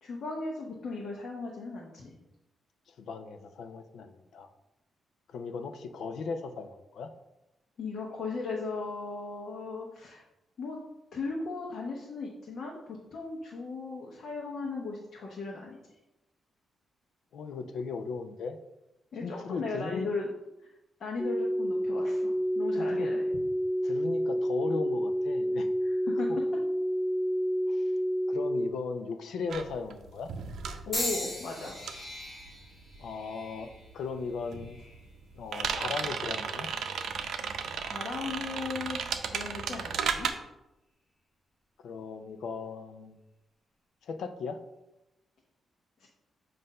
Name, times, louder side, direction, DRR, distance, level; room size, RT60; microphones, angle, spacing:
voice 1, 0.0-2.2 7.8-10.2 10.6-10.8 11.1-15.8 19.1-20.3 21.0-23.3 25.8-26.3 30.9-31.8 37.8-40.3 46.0-46.1, left 3 dB, 50° left, -2 dB, 0.9 m, -37 dB
voice 2, 2.9-4.5 5.3-7.1 17.3-18.6 19.2-20.1 22.8-23.1 23.8-25.7 26.3-26.4 27.7-27.9 28.3-30.3 33.0-34.8 35.4-36.7 41.8-43.2 44.0-44.6, left 5 dB, 75° left, 8 dB, 0.5 m, -37 dB
sound 1, 21.2-28.7, equal, 5° left, 0.4 m, -29 dB
sound 2, 29.5-33.3 33.6-40.3, right 6 dB, 75° right, 0.5 m, -35 dB
sound 3, 30.9-35.1 35.8-36.2 37.2-37.3, left 1 dB, 25° left, 1.8 m, -39 dB
7.7 x 2.6 x 5.4 m, 0.94 s
wide cardioid pair, 165°, 0 cm